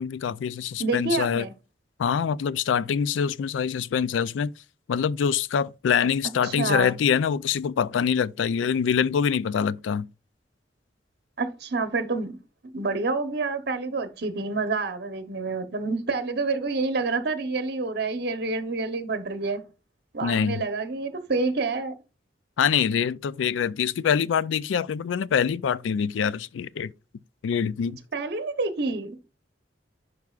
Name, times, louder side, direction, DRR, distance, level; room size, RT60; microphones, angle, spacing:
voice 1, 0.0-1.5 2.0-4.5 4.9-10.1 20.2-20.6 22.6-26.9 27.4-28.0, left 7 dB, 90° left, 0.3 m, -25 dB
voice 2, 0.8-1.5 6.4-7.0 11.4-12.4 12.6-19.6 20.1-21.9 28.1-29.2, right 3 dB, 60° right, 0.9 m, -28 dB
10.5 x 4.6 x 2.4 m
head